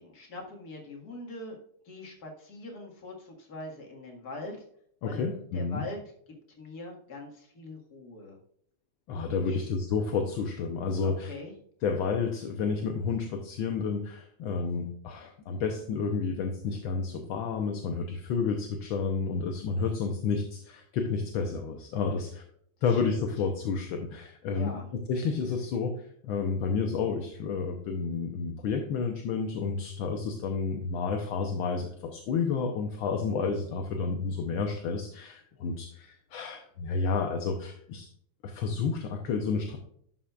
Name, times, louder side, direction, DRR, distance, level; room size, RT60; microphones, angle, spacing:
voice 1, 0.0-1.6 1.9-4.6 5.1-5.2 5.5-6.0 6.6-8.4 9.3-9.7 11.0-11.6 22.9-23.0 24.5-24.9, left 2 dB, 45° left, 0 dB, 2.2 m, -42 dB
voice 2, 5.0-5.8 9.1-11.3 11.8-22.4 22.8-38.1 38.4-39.8, left 5 dB, 70° left, 4 dB, 1.5 m, -30 dB
11.5 x 5.8 x 2.4 m, 0.66 s
omnidirectional pair, 2.4 m